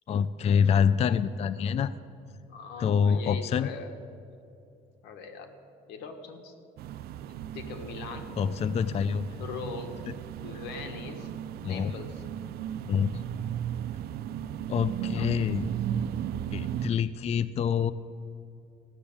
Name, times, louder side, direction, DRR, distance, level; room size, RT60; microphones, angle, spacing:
voice 1, 0.1-1.9 2.8-3.7 8.4-9.3 11.6-12.0 12.9-13.2 14.7-15.6 16.5-17.9, left 7 dB, 40° left, 15 dB, 0.4 m, -26 dB
voice 2, 2.5-3.9 5.0-5.6 5.9-6.5 7.5-8.3 9.4-10.0 10.4-11.3 11.6-12.2 15.0-15.3, left 5 dB, 90° left, 6 dB, 1.5 m, -41 dB
sound 1, 6.8-16.9, right 10 dB, 65° right, 0.5 m, -36 dB
15.5 x 7.0 x 8.7 m, 2.6 s
cardioid pair, 110°, 17 cm